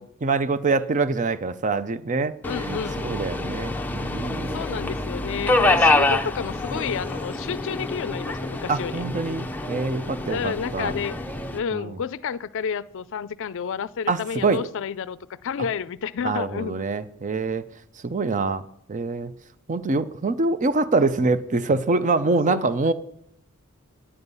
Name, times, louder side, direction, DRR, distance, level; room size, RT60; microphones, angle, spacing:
voice 1, 0.2-4.6 8.7-10.9 11.7-12.0 14.1-14.6 16.2-17.6 18.0-18.6 18.9-19.3 19.7-22.9, right 3 dB, 35° right, 14 dB, 0.5 m, -25 dB
voice 2, 2.4-3.0 4.5-9.0 10.3-11.2 11.5-16.7 22.5-22.7, left 7 dB, 60° left, 16 dB, 0.4 m, -30 dB
Subway metro underground, 2.4-11.6, left 2 dB, 10° left, 0.6 m, -26 dB
9.9 x 9.7 x 5.4 m, 0.74 s
head